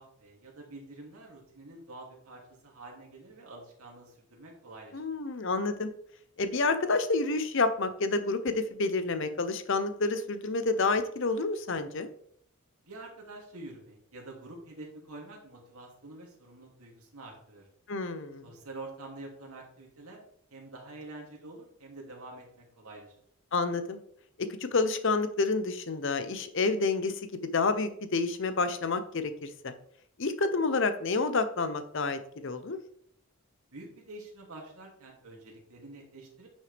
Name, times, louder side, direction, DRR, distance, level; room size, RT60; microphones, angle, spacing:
voice 1, 0.0-5.0 12.9-17.6 18.4-20.2 20.5-23.1 33.7-36.5, right 2 dB, 85° right, -1 dB, 2.6 m, -47 dB
voice 2, 4.9-5.9 6.4-12.1 17.9-18.5 23.5-24.0 24.6-29.7 30.2-32.8, left 3 dB, 55° left, 10 dB, 0.7 m, -29 dB
9.8 x 6.1 x 3.4 m, 0.65 s
head